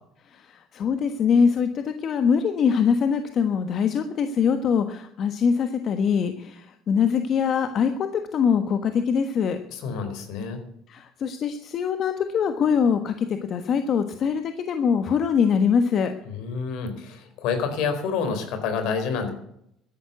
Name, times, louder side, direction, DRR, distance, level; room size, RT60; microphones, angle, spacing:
voice 1, 0.2-9.6 10.9-16.1, left 6 dB, 50° left, 8 dB, 1.3 m, -23 dB
voice 2, 9.7-10.6 16.3-19.3, left 5 dB, 70° left, 9 dB, 4.3 m, -28 dB
13.5 x 11.5 x 8.2 m, 0.74 s
cardioid pair, 110°, 0 cm